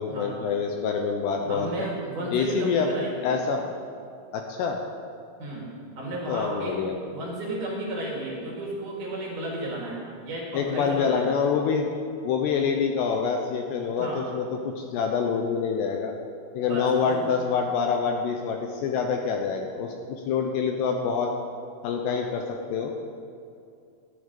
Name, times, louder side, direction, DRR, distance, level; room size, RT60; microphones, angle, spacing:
voice 1, 0.0-1.9 2.3-2.9 3.2-3.6 4.3-4.8 6.3-6.9 10.5-11.8 12.2-16.1 16.5-21.3 21.8-22.9, left 6 dB, 80° left, 3 dB, 2.6 m, -26 dB
voice 2, 1.5-3.4 5.4-11.3 14.0-14.3 16.6-17.3, right 1 dB, 50° right, -4 dB, 2.9 m, -33 dB
14.5 x 9.8 x 5.2 m, 2.4 s
omnidirectional pair, 5.4 m